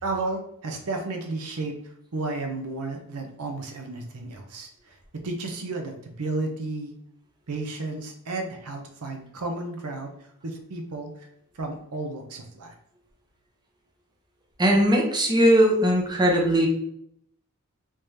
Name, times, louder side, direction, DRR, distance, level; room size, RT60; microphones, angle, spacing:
voice 1, 0.0-6.9 7.5-11.3 11.5-12.7, right 2 dB, 80° right, 4 dB, 0.6 m, -33 dB
voice 2, 14.6-16.7, equal, 20° right, -1 dB, 0.7 m, -19 dB
3.5 x 2.7 x 3.2 m, 0.71 s
head